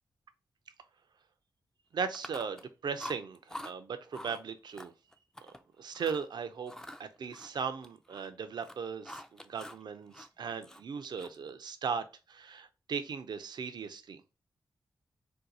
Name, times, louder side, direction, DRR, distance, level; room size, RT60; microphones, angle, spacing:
voice 1, 1.9-4.9 5.4-5.5 5.8-6.7 7.0-14.2, right 6 dB, 70° right, 0.4 m, -38 dB
Chewing mastication, 2.1-2.7 3.0-3.7 4.1-4.4 4.8-5.6 5.9-6.3 6.7-8.3 8.6-9.8 10.1-11.5, left 1 dB, 5° left, 0.3 m, -46 dB
2.7 x 2.2 x 4.0 m
supercardioid pair, 40°, 8 cm